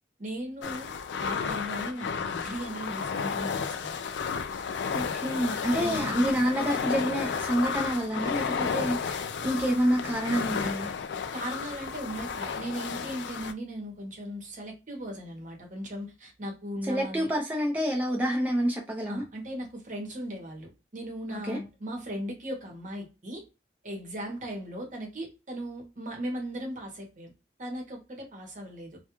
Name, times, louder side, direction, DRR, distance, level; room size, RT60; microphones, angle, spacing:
voice 1, 0.2-0.9 1.2-4.0 5.7-6.4 11.3-17.3 19.0-23.4 23.8-27.3 27.6-29.0, equal, 45° right, 0.9 m, -38 dB
sound 1, 0.6-13.5, left 6 dB, 80° left, 0.3 m, -32 dB
voice 2, 4.9-10.9 16.9-19.2 21.3-21.6, equal, 10° right, 0.5 m, -28 dB
2.3 x 2.1 x 2.9 m
head